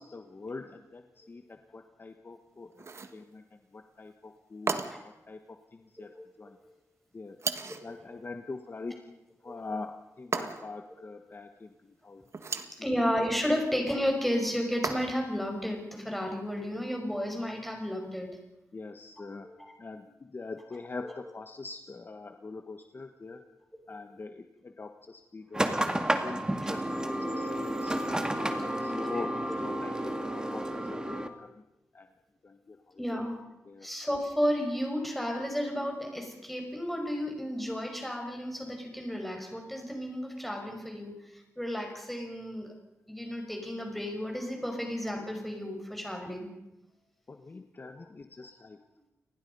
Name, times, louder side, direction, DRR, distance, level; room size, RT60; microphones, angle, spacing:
voice 1, 0.0-2.8 3.1-6.6 7.1-7.4 7.8-12.9 18.7-19.5 19.8-23.4 23.9-27.9 28.4-29.3 29.6-31.6 31.9-32.1 32.4-33.2 33.7-33.9 47.3-48.8, left 3 dB, 40° left, 6 dB, 1.3 m, -44 dB
sound 1, 2.8-3.2 4.7-5.2 7.4-7.9 10.3-10.9 12.3-12.8 14.8-15.4, right 4 dB, 55° right, 1.7 m, -34 dB
voice 2, 12.7-18.3 19.4-19.7 21.0-21.1 23.2-23.4 23.9-24.0 26.6-26.7 27.3-27.4 28.9-29.3 33.0-33.4 33.8-42.7 43.1-46.5 48.0-48.1, equal, ahead, 2 dB, 5.7 m, -33 dB
sound 2, 25.5-31.3, right 1 dB, 15° right, 2.0 m, -31 dB
30.0 x 20.0 x 5.5 m, 0.94 s
wide cardioid pair, 115°, 6 cm